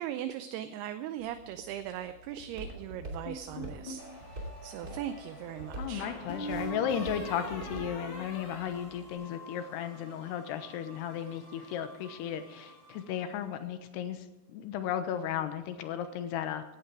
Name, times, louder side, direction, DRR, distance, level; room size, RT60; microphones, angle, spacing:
voice 1, 0.0-4.0 4.3-6.1, right 11 dB, 80° right, 10 dB, 2.5 m, -39 dB
Walk footsteps, 1.2-9.1, right 1 dB, 25° right, 2.6 m, -46 dB
sound 1, 3.3-4.1 6.0-9.6, equal, 45° left, 4.2 m, -41 dB
sound 2, 4.0-13.6, equal, 25° left, 5.8 m, -51 dB
voice 2, 5.8-16.6, left 9 dB, 80° left, 9 dB, 3.1 m, -35 dB
16.5 x 11.5 x 4.7 m, 1.1 s
omnidirectional pair, 4.9 m